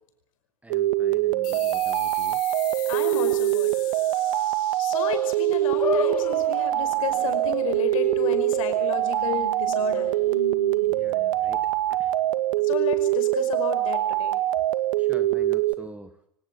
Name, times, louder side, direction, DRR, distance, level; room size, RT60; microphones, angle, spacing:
voice 1, 0.6-2.4 10.9-11.6 11.9-12.1 15.0-16.2, right 2 dB, 5° right, 10 dB, 1.4 m, -45 dB
sound 1, 0.7-15.7, right 14 dB, 60° right, 1.9 m, -24 dB
sound 2, 1.4-6.6, left 14 dB, 45° left, 3.9 m, -42 dB
voice 2, 2.9-3.7 4.8-10.1 12.6-14.4, left 8 dB, 60° left, 9 dB, 5.3 m, -32 dB
sound 3, 5.8-12.2, left 6 dB, 80° left, 2.1 m, -35 dB
25.0 x 18.0 x 8.6 m, 0.72 s
hypercardioid pair, 100°, 19 cm